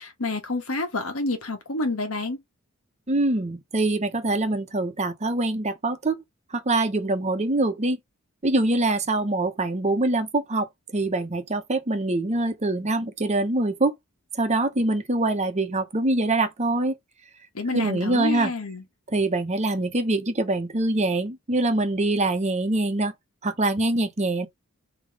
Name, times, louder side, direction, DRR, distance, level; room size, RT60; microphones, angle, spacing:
voice 1, 0.0-2.4 17.5-18.8, left 2 dB, 75° left, 1.5 m, -28 dB
voice 2, 3.1-6.2 6.5-8.0 8.4-10.7 10.9-13.9 14.3-17.0 17.7-18.5 19.1-23.1 23.4-24.5, right 2 dB, 30° right, 0.9 m, -24 dB
3.6 x 3.0 x 4.8 m
head